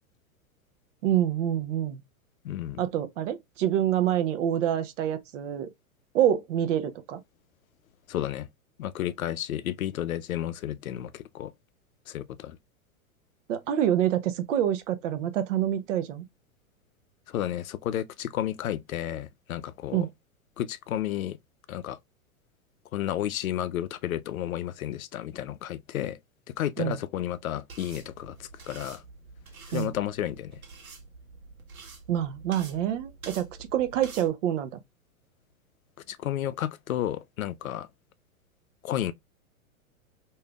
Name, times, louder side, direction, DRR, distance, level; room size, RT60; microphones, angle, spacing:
voice 1, 1.0-2.0 2.8-5.7 6.1-7.2 13.5-16.2 19.9-20.1 26.8-27.0 29.7-29.9 32.1-34.8, right 11 dB, 60° right, 0.7 m, -26 dB
voice 2, 2.4-2.8 8.1-8.5 8.8-11.5 12.1-12.6 17.3-20.1 20.6-21.4 21.7-22.0 22.9-26.2 26.5-29.0 29.7-30.6 36.1-37.9 38.8-39.1, left 12 dB, 75° left, 0.5 m, -32 dB
sound 1, 27.7-34.3, right 4 dB, 80° right, 1.0 m, -47 dB
3.3 x 2.7 x 2.3 m
figure-of-eight pair, 100°, 42 cm